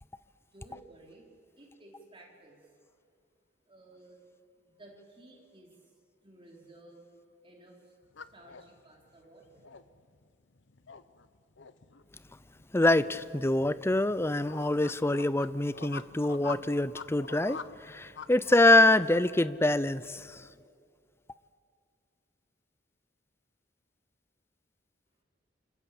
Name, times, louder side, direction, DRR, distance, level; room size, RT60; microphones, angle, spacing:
voice 1, 0.4-2.6 3.6-4.2 4.5-5.9 6.2-7.1 7.4-8.0 8.3-9.7, right 2 dB, 30° right, -2 dB, 5.0 m, -55 dB
sound 1, 8.0-18.8, left 5 dB, 70° left, 0.9 m, -46 dB
voice 2, 12.7-20.4, left 2 dB, 15° left, 15 dB, 0.6 m, -25 dB
27.5 x 27.5 x 7.3 m, 2.3 s
head